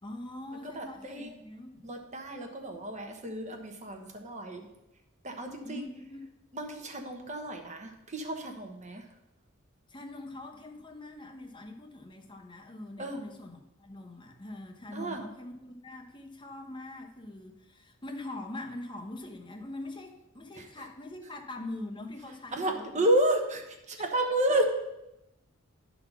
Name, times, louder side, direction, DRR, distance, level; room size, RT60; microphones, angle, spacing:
voice 1, 0.0-1.9 5.6-6.2 9.9-23.1 24.3-24.6, left 2 dB, 20° left, 2 dB, 1.0 m, -43 dB
voice 2, 0.6-1.4 1.8-4.7 5.2-5.8 6.5-9.0 13.0-13.2 14.9-15.2 20.6-20.7 22.5-24.6, right 1 dB, 35° right, 3 dB, 1.1 m, -31 dB
10.5 x 4.1 x 5.9 m, 0.90 s
head